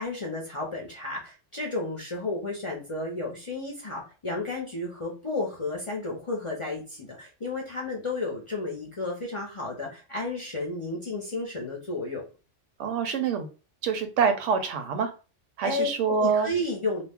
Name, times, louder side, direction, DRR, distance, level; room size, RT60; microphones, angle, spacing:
voice 1, 0.0-12.2 15.6-17.0, left 2 dB, 35° left, -3 dB, 0.5 m, -32 dB
voice 2, 12.8-13.5 13.8-15.1 15.6-16.5, right 6 dB, 80° right, 8 dB, 0.9 m, -25 dB
2.4 x 2.0 x 3.3 m, 0.34 s
omnidirectional pair, 1.2 m